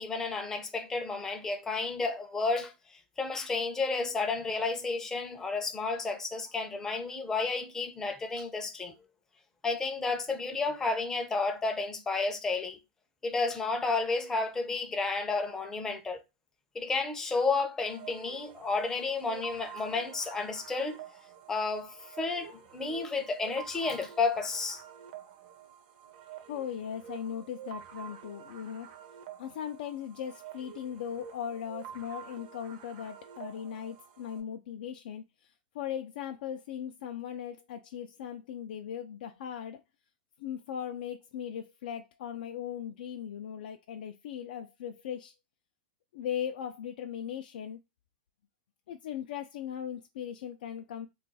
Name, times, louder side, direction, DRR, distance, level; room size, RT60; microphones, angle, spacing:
voice 1, 0.0-2.7 3.2-8.9 9.6-12.8 13.2-16.2 16.7-21.0 21.5-24.8, left 3 dB, 10° left, 0.5 m, -31 dB
sound 1, 17.9-34.4, right 9 dB, 55° right, 0.6 m, -48 dB
voice 2, 26.4-28.9 29.4-39.8 40.4-45.3 46.1-47.8 48.9-51.1, left 9 dB, 70° left, 0.4 m, -38 dB
2.3 x 2.3 x 3.9 m
supercardioid pair, 160°, 5 cm